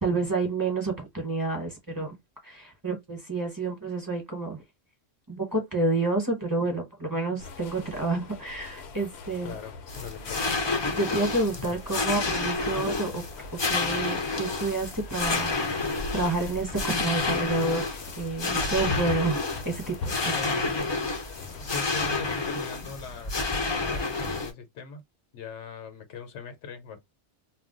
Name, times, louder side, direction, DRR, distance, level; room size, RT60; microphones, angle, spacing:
voice 1, 0.0-2.2 2.4-4.6 5.3-9.5 10.9-13.2 13.7-15.6 16.1-19.4 19.6-20.4, right 3 dB, 20° right, 0.9 m, -29 dB
sound 1, 7.4-22.5, left 3 dB, 70° left, 0.8 m, -42 dB
voice 2, 9.4-10.6 20.3-21.0 21.7-23.3 23.8-25.0 25.3-27.0, left 5 dB, 85° left, 1.1 m, -40 dB
sound 2, 9.9-24.5, left 3 dB, 35° left, 0.4 m, -30 dB
2.3 x 2.2 x 3.7 m
omnidirectional pair, 1.2 m